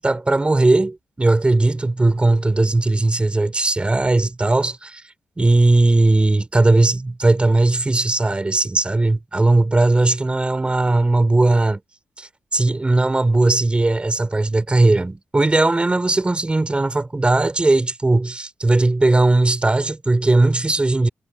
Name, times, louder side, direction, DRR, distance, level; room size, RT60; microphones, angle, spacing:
voice 1, 0.0-5.0 5.4-11.8 12.2-21.1, right 2 dB, 20° right, 3.8 m, -18 dB
cardioid pair, 80°, 5 cm